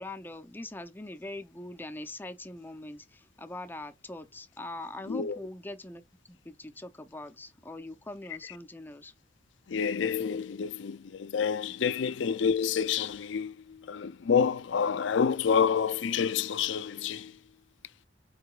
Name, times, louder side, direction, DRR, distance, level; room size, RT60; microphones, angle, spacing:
voice 1, 0.0-9.1, left 2 dB, 10° left, 0.5 m, -42 dB
voice 2, 9.7-17.3, left 6 dB, 85° left, 0.5 m, -28 dB
4.8 x 4.6 x 2.3 m
head